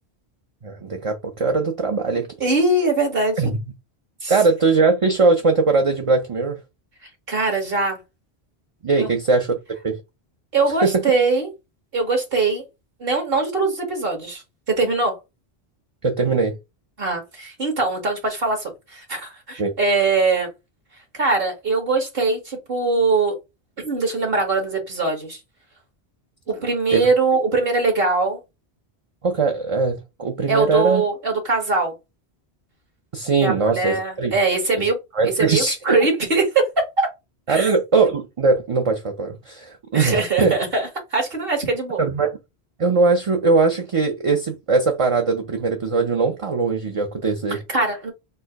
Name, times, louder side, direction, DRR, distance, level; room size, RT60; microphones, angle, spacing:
voice 1, 0.6-2.3 3.4-3.6 4.3-6.6 8.8-9.5 9.8-10.0 10.8-11.0 16.0-16.6 19.6-19.7 26.9-27.1 29.2-31.1 33.1-34.3 34.8-34.9 35.1-36.1 37.5-40.5 42.0-42.3 42.8-47.6, right 4 dB, 40° right, 0.6 m, -20 dB
voice 2, 2.4-3.5 4.2-4.3 7.3-8.0 9.0-9.1 10.5-11.5 11.9-12.6 13.0-14.4 14.7-15.2 17.0-20.5 21.1-23.4 23.8-25.4 26.5-28.4 30.5-31.9 33.4-35.0 35.4-37.1 37.5-37.7 39.9-42.0 47.5-48.1, right 3 dB, 60° right, 1.9 m, -22 dB
4.5 x 2.2 x 4.5 m
omnidirectional pair, 1.1 m